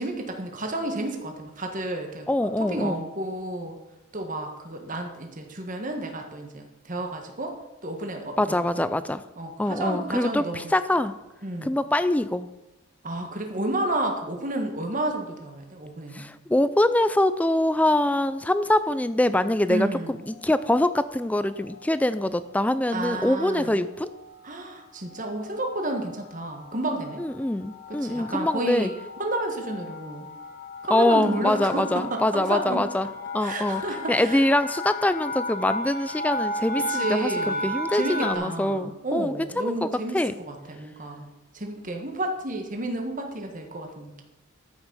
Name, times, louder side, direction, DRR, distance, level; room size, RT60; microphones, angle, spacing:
voice 1, 0.0-2.3 2.6-3.8 4.1-7.5 7.8-8.9 9.4-10.7 11.4-11.7 13.0-16.2 19.7-20.2 22.9-23.8 24.4-27.2 27.9-28.9 29.2-30.3 30.8-32.8 33.4-34.5 36.9-41.2 41.5-44.2, right 1 dB, 35° right, 3 dB, 1.5 m, -31 dB
voice 2, 2.3-3.0 8.4-9.2 9.6-11.1 11.6-12.5 16.1-24.1 27.2-28.9 30.9-33.1 33.3-33.8 34.1-39.9 40.1-40.3, left 1 dB, 5° left, 13 dB, 0.3 m, -24 dB
sound 1, 20.2-20.7 21.4-21.8 22.1-22.3 22.6-38.3, left 1 dB, 45° left, 1.2 m, -35 dB
13.5 x 6.1 x 5.5 m, 1.0 s
head